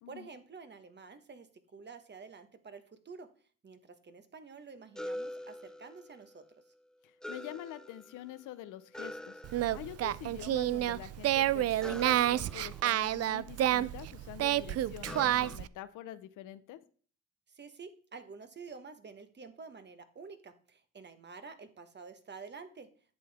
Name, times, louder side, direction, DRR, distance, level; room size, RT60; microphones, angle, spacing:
voice 1, 0.1-1.5 1.7-3.3 3.6-6.4 17.5-22.9, right 5 dB, 35° right, 9 dB, 1.3 m, -49 dB
sound 1, 5.0-6.4 7.2-8.4 8.9-10.2 11.8-13.9 15.0-15.6, left 1 dB, ahead, 0.5 m, -45 dB
voice 2, 7.0-9.4 9.7-16.8, left 13 dB, 85° left, 13 dB, 0.8 m, -46 dB
Singing, 9.4-15.7, right 13 dB, 55° right, 0.4 m, -29 dB
11.0 x 7.8 x 3.5 m, 0.43 s
cardioid pair, 90°, 30 cm